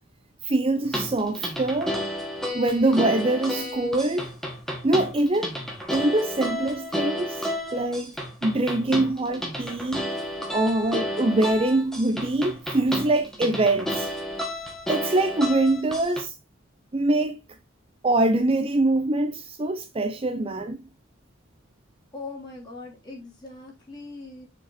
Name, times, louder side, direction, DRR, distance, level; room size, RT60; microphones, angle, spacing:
voice 1, 0.4-2.0 2.5-4.3 4.8-5.5 5.9-8.2 8.4-10.2 10.5-14.1 14.9-16.3 16.9-17.4 18.0-20.8, right 2 dB, 30° right, 0.5 m, -24 dB
sound 1, 0.8-16.2, equal, ahead, 1.8 m, -31 dB
voice 2, 22.1-24.5, left 3 dB, 20° left, 3.8 m, -40 dB
6.8 x 5.3 x 4.2 m
head